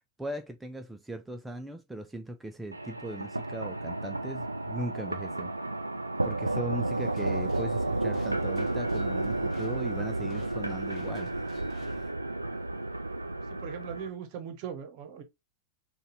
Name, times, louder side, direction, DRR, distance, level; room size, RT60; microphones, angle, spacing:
voice 1, 0.2-5.5 6.2-11.3, right 1 dB, 5° right, 0.5 m, -39 dB
sound 1, 2.7-14.1, right 2 dB, 85° right, 0.4 m, -32 dB
sound 2, 6.9-12.1, left 3 dB, 35° left, 1.1 m, -53 dB
voice 2, 13.5-15.2, right 8 dB, 45° right, 0.9 m, -39 dB
3.9 x 2.3 x 4.0 m
figure-of-eight pair, 90°, 0 cm